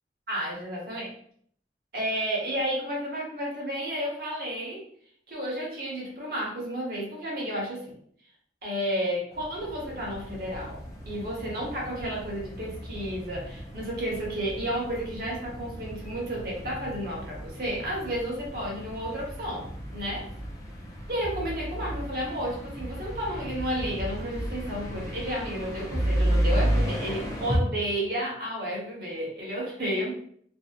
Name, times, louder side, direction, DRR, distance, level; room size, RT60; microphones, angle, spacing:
voice 1, 0.3-1.1 1.9-4.8 5.3-8.0 8.6-10.8 11.1-20.2 21.1-30.1, equal, 55° right, -3 dB, 0.9 m, -32 dB
sound 1, 9.3-27.6, equal, 20° left, 0.5 m, -33 dB
2.6 x 2.1 x 2.3 m, 0.63 s
head